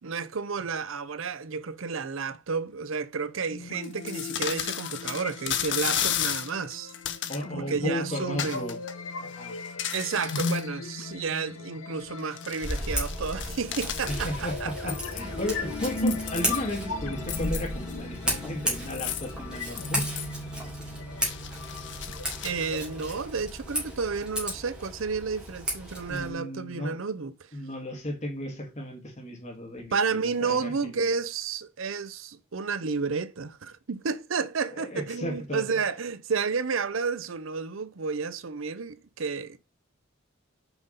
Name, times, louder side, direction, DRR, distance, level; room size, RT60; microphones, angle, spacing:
voice 1, 0.0-6.9 7.7-8.6 9.9-14.9 15.2-15.3 22.4-27.3 29.9-39.6, right 5 dB, 70° right, 0.6 m, -31 dB
sound 1, 3.5-23.5, left 3 dB, 80° left, 1.1 m, -37 dB
sound 2, 3.8-7.4 8.3-8.9 9.3-10.7 12.0-14.4 14.9-15.4 15.9-16.7 17.1-17.9 18.7-19.3 19.8-20.3 21.1-22.9, left 10 dB, 55° left, 0.8 m, -34 dB
voice 2, 7.3-8.8 9.2-9.6 14.1-20.1 26.1-27.0 27.5-31.1 34.7-35.8, equal, 35° left, 2.3 m, -35 dB
Scissors, 12.6-26.3, equal, 5° right, 2.9 m, -34 dB
6.0 x 5.2 x 5.5 m
head